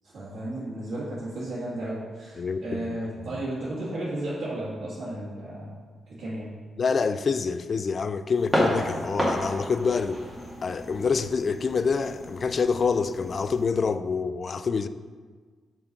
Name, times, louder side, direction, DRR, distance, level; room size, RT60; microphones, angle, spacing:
voice 1, 0.0-5.8 6.2-6.5, right 1 dB, 75° right, -10 dB, 1.7 m, -33 dB
voice 2, 2.4-3.4 6.8-10.2 10.6-14.9, left 5 dB, 50° left, 12 dB, 0.3 m, -27 dB
sound 1, 8.3-13.6, equal, 10° right, 2.0 m, -31 dB
5.5 x 4.6 x 5.2 m, 1.5 s
cardioid pair, 70°, 0 cm